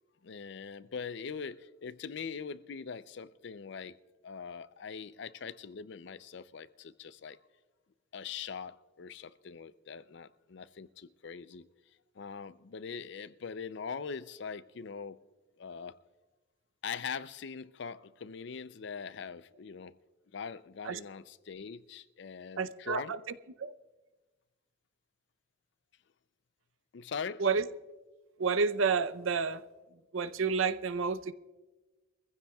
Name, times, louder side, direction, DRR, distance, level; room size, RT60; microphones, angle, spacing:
voice 1, 0.2-4.0 4.2-7.4 8.1-11.7 12.2-15.2 15.6-16.0 16.8-20.0 20.3-23.1 26.9-27.5, left 6 dB, 60° left, 0.4 m, -42 dB
voice 2, 22.6-23.2 23.6-23.7 27.4-27.7 28.4-29.6 30.1-31.3, right 5 dB, 80° right, 0.6 m, -30 dB
23.5 x 15.5 x 2.3 m
head